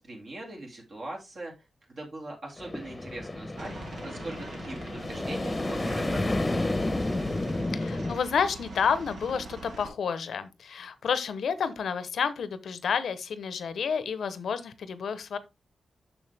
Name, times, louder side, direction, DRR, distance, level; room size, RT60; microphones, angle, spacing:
voice 1, 0.0-1.5 1.9-3.7 4.0-6.4, right 2 dB, 55° right, 2.5 m, -41 dB
sound 1, 2.6-8.2, left 2 dB, 20° left, 0.9 m, -31 dB
Aircraft, 3.6-9.9, right 2 dB, 85° right, 2.3 m, -43 dB
voice 2, 7.7-15.4, left 6 dB, 85° left, 0.8 m, -30 dB
7.1 x 6.3 x 3.4 m
wide cardioid pair, 125°, 0 cm